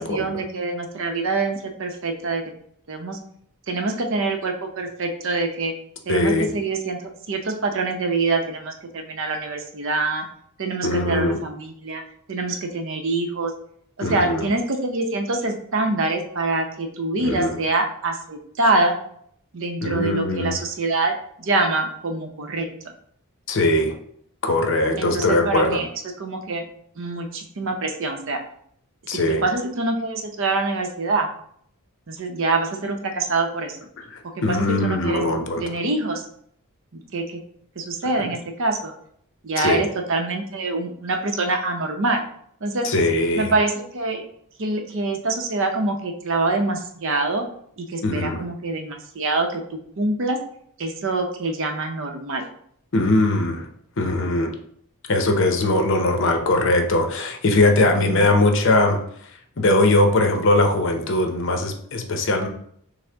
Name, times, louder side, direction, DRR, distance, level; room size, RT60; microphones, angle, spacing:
voice 1, 0.0-2.4 2.9-3.2 3.7-5.7 6.1-7.0 7.3-10.3 10.6-12.0 12.3-13.5 14.0-18.9 19.5-22.7 25.0-25.9 26.2-26.6 27.0-28.4 29.4-31.3 32.1-33.8 34.5-35.2 35.6-36.2 36.9-37.4 37.8-38.9 39.4-42.2 42.6-42.9 43.3-44.2 44.6-47.5 47.8-50.4 50.8-52.5 57.9-58.3, right 3 dB, 60° right, 4 dB, 0.6 m, -25 dB
voice 2, 6.1-6.5 10.8-11.4 14.0-14.4 17.2-17.5 19.8-20.5 23.5-24.0 24.4-25.8 29.1-29.4 34.1-35.6 38.2-38.3 39.6-39.8 42.8-43.5 48.0-48.4 52.9-53.7 54.0-54.5 55.1-59.0 59.6-62.5, left 2 dB, 60° left, 4 dB, 0.7 m, -20 dB
6.2 x 2.1 x 3.4 m, 0.66 s
head